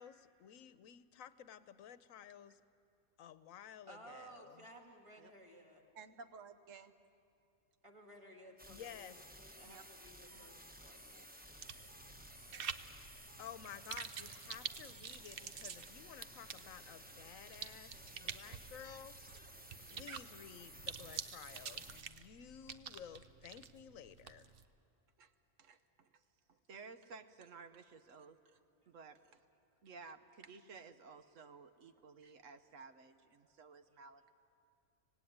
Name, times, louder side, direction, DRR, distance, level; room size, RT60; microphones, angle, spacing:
voice 1, 0.0-2.6 3.2-4.6 8.7-9.2 13.4-19.2 19.8-24.5, left 9 dB, 85° left, 14 dB, 1.2 m, -53 dB
voice 2, 3.9-5.8 7.8-9.1 9.4-11.9 12.4-12.7 28.8-28.9 32.3-32.4 33.4-33.5, right 1 dB, 25° right, 1 dB, 2.4 m, -58 dB
voice 3, 5.9-6.9 9.6-9.8 10.3-10.5 19.5-20.1 25.2-25.3 25.6-26.2 26.5-29.4 29.8-34.3, right 4 dB, 70° right, 10 dB, 1.3 m, -56 dB
sound 1, 8.6-22.0, equal, 5° right, 1.0 m, -56 dB
sound 2, 11.6-24.7, right 7 dB, 50° right, 0.8 m, -49 dB
25.5 x 18.0 x 9.4 m, 2.6 s
omnidirectional pair, 1.4 m